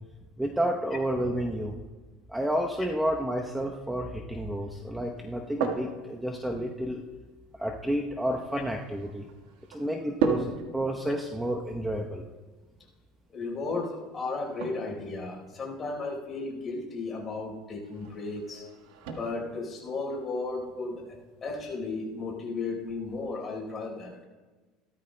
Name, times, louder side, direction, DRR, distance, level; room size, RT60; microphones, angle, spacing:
voice 1, 0.4-1.8 2.3-7.0 7.6-9.3 9.7-12.3, equal, 5° right, 0 dB, 0.8 m, -30 dB
sound 1, 5.2-23.2, right 5 dB, 80° right, 1.4 m, -39 dB
voice 2, 13.3-18.6 19.1-24.2, left 3 dB, 25° left, -1 dB, 4.0 m, -34 dB
18.0 x 13.0 x 2.2 m, 1.3 s
supercardioid pair, 125°, 0 cm